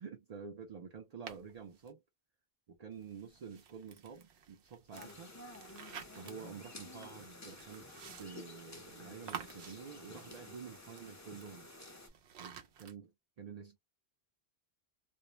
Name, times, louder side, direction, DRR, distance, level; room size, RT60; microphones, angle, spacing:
voice 1, 0.0-2.0 2.8-5.3 6.2-11.7 12.4-13.1 13.4-13.8, right 6 dB, 50° right, 0.5 m, -49 dB
sound 1, 1.3-1.9 2.9-12.9, right 8 dB, 80° right, 0.9 m, -52 dB
sound 2, 4.9-12.1, left 2 dB, 20° left, 0.5 m, -52 dB
2.5 x 2.0 x 2.9 m
omnidirectional pair, 1.1 m